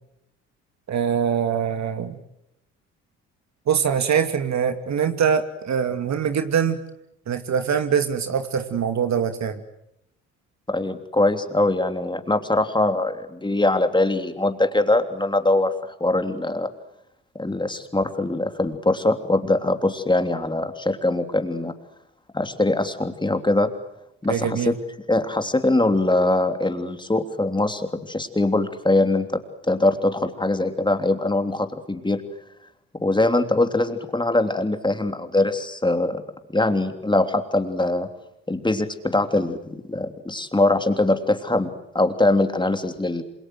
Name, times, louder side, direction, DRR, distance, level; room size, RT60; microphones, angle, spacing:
voice 1, 0.9-2.2 3.7-6.8 7.3-9.6 24.3-24.7, right 7 dB, 45° right, 8 dB, 2.5 m, -23 dB
voice 2, 10.7-15.7 16.0-16.7 17.4-21.7 22.3-23.7 24.2-24.8 25.1-29.4 29.7-32.2 33.0-36.2 36.5-38.1 38.5-43.2, left 2 dB, 10° left, 7 dB, 3.3 m, -22 dB
27.5 x 27.5 x 7.9 m, 0.82 s
figure-of-eight pair, 50°, 37 cm